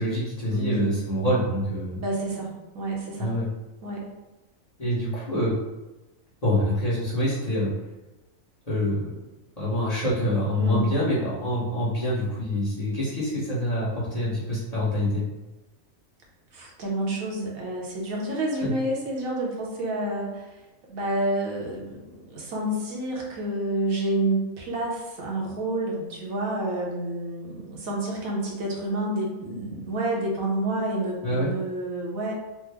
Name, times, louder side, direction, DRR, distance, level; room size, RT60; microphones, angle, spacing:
voice 1, 0.0-2.0 3.2-3.5 4.8-5.5 6.4-7.7 8.7-9.1 9.6-15.2 18.6-18.7 31.2-31.5, left 1 dB, 30° left, -9 dB, 0.9 m, -26 dB
voice 2, 0.5-0.9 2.0-3.4 3.8-4.0 10.6-10.9 16.5-20.6 20.9-32.3, right 1 dB, 80° right, -2 dB, 1.2 m, -29 dB
3.3 x 2.0 x 3.3 m, 1.0 s
omnidirectional pair, 1.5 m